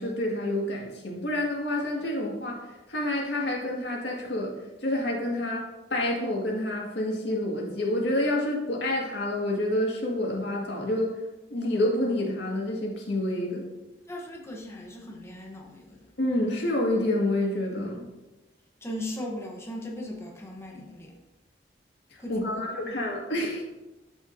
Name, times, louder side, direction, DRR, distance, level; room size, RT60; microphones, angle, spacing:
voice 1, 0.0-2.6 2.9-4.5 4.8-11.1 11.5-13.6 16.2-18.1 22.3-23.6, left 1 dB, 70° left, -2 dB, 1.9 m, -28 dB
voice 2, 14.1-16.1 18.8-21.1 22.2-23.1, left 1 dB, 15° left, -1 dB, 1.0 m, -38 dB
12.0 x 5.0 x 2.7 m, 1.1 s
head